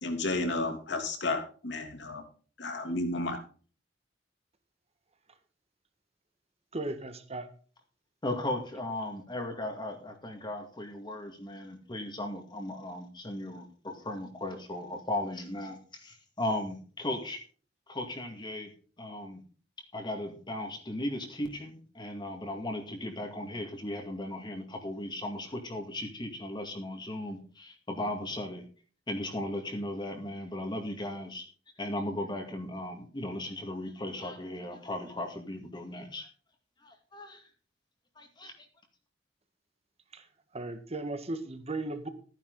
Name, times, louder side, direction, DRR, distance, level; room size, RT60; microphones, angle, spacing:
voice 1, 0.0-2.2 2.6-3.4, left 2 dB, 65° left, 5 dB, 3.1 m, -32 dB
voice 2, 6.7-7.5 40.1-40.3 40.5-42.1, right 2 dB, 35° right, 9 dB, 1.7 m, -36 dB
voice 3, 8.2-17.4 17.9-18.7 19.0-19.4 19.9-28.7 29.1-31.5 31.8-36.3 36.8-37.5 38.2-38.7, left 1 dB, 25° left, 3 dB, 2.2 m, -37 dB
14.5 x 9.8 x 4.0 m, 0.40 s
head